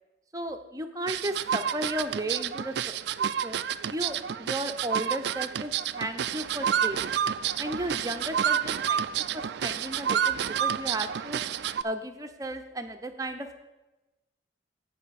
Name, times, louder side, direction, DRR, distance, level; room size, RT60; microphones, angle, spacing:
voice 1, 0.3-3.6 3.9-7.1 7.6-11.4 11.8-13.6, right 1 dB, 15° right, 6 dB, 0.7 m, -35 dB
sound 1, 1.1-11.8, right 8 dB, 55° right, 0.3 m, -29 dB
16.5 x 5.5 x 4.2 m, 1.1 s
head